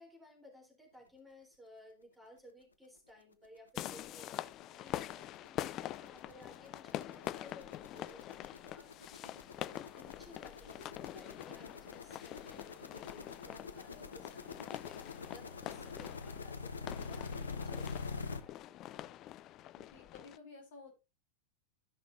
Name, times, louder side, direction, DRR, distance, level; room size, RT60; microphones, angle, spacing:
voice 1, 0.0-18.9, left 1 dB, 5° right, -1 dB, 3.8 m, -58 dB
sound 1, 3.0-3.1 3.4-3.6 3.8-18.4, left 4 dB, 75° left, 0.7 m, -46 dB
sound 2, 3.8-20.4, left 13 dB, 35° left, 0.3 m, -45 dB
voice 2, 19.7-20.9, left 4 dB, 55° left, 0 dB, 3.4 m, -54 dB
14.0 x 5.8 x 2.7 m, 0.26 s
figure-of-eight pair, 90°, 0 cm